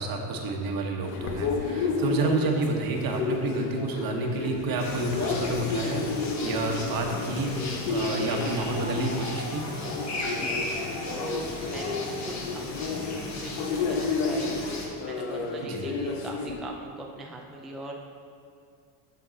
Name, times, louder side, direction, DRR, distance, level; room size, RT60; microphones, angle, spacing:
voice 1, 0.0-9.7 15.6-15.9, right 3 dB, 45° right, 2 dB, 1.3 m, -30 dB
sound 1, 1.0-16.5, left 4 dB, 90° left, 1.2 m, -32 dB
sound 2, 4.8-14.9, left 2 dB, 35° left, 1.6 m, -35 dB
voice 2, 10.3-12.4 12.7-18.1, right 1 dB, ahead, -1 dB, 0.4 m, -41 dB
7.9 x 7.1 x 4.1 m, 2.5 s
cardioid pair, 125°, 48 cm